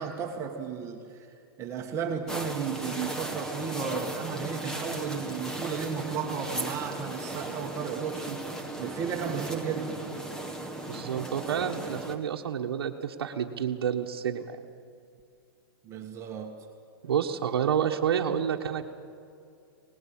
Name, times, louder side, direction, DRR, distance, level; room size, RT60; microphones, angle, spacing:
voice 1, 0.0-8.5 8.8-10.0 15.8-16.7, right 6 dB, 25° right, 1 dB, 1.7 m, -34 dB
sound 1, 2.3-12.2, right 2 dB, 5° left, 1.7 m, -36 dB
voice 2, 10.9-14.6 17.0-18.9, right 8 dB, 85° right, 2 dB, 1.4 m, -29 dB
25.0 x 19.0 x 8.8 m, 2.5 s
hypercardioid pair, 150°, 12 cm